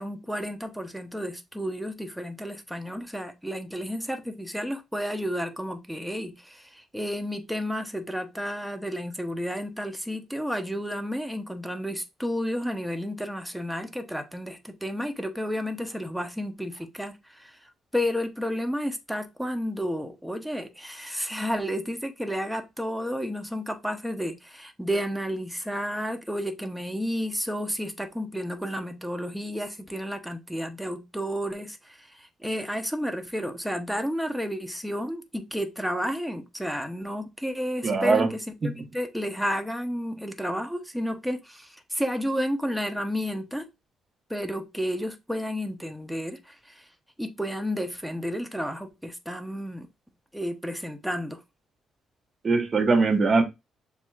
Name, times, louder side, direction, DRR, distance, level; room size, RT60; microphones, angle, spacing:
voice 1, 0.0-43.6 44.3-46.9 47.2-49.9 50.3-51.4, equal, 5° right, 0.8 m, -31 dB
voice 2, 37.8-38.3 52.4-53.4, right 4 dB, 40° right, 1.0 m, -21 dB
7.0 x 2.8 x 2.4 m
cardioid pair, 90°, 0 cm